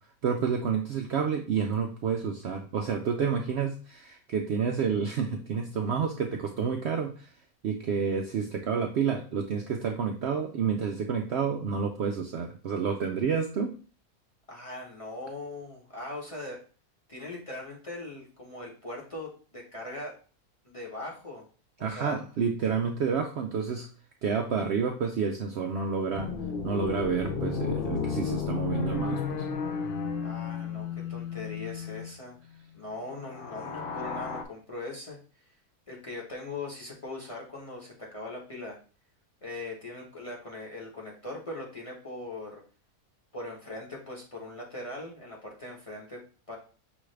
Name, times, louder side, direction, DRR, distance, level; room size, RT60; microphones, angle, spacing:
voice 1, 0.2-7.3 7.6-13.7 21.8-23.9 24.2-26.3 26.6-29.5, right 6 dB, 65° right, 3 dB, 0.6 m, -29 dB
voice 2, 14.5-16.6 17.1-20.1 20.6-21.5 21.8-22.2 30.2-32.4 32.7-35.2 35.5-35.6 35.9-38.8 39.4-42.6 43.3-46.6, left 2 dB, 25° left, -3 dB, 0.9 m, -40 dB
sound 1, 26.1-32.1 33.2-34.4, left 5 dB, 65° left, 0.5 m, -33 dB
6.1 x 2.4 x 3.2 m, 0.38 s
omnidirectional pair, 1.5 m